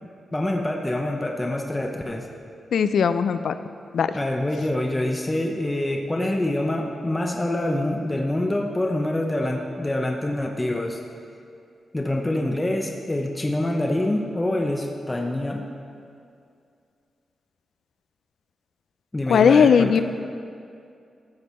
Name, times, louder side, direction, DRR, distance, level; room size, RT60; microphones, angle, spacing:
voice 1, 0.0-2.3 4.1-11.0 11.9-15.7 19.1-20.0, left 1 dB, 15° left, 1 dB, 0.6 m, -26 dB
voice 2, 2.7-3.5 3.9-4.1 19.3-20.0, left 6 dB, 75° left, 11 dB, 0.4 m, -18 dB
14.5 x 6.4 x 4.3 m, 2.4 s
wide cardioid pair, 120°, 0 cm